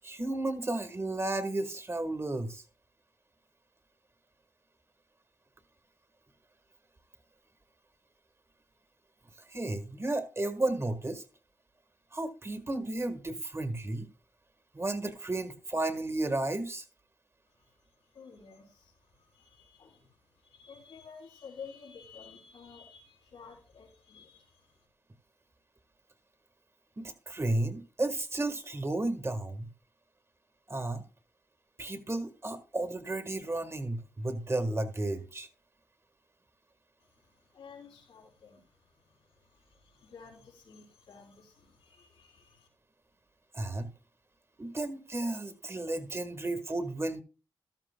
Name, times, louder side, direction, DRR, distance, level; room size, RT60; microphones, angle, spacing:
voice 1, 0.0-2.6 9.5-11.2 12.1-14.1 14.7-16.8 27.0-29.7 30.7-31.0 31.8-35.5 43.5-43.9 44.6-47.2, right 2 dB, 30° right, 1.5 m, -33 dB
voice 2, 17.5-24.9 37.0-42.7, left 5 dB, 85° left, 3.3 m, -53 dB
13.5 x 12.5 x 2.2 m
cardioid pair, 50°, 9 cm